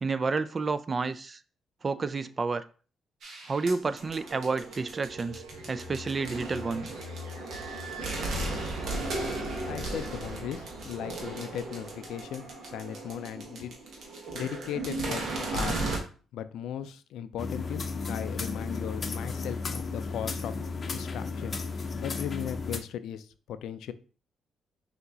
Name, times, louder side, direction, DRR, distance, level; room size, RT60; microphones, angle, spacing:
voice 1, 0.0-1.4 1.8-2.6 3.5-6.9, right 4 dB, 35° right, 13 dB, 0.3 m, -30 dB
sound 1, 3.2-16.0, right 2 dB, 65° right, 1.2 m, -36 dB
sound 2, 4.7-11.4, left 1 dB, 85° right, 1.1 m, -44 dB
voice 2, 9.6-13.7 14.3-15.2 15.5-15.9 16.3-23.9, left 10 dB, 80° left, 12 dB, 0.4 m, -37 dB
sound 3, 17.4-22.8, left 4 dB, 40° left, 0.6 m, -34 dB
5.8 x 2.8 x 2.8 m, 0.38 s
cardioid pair, 90°, 0 cm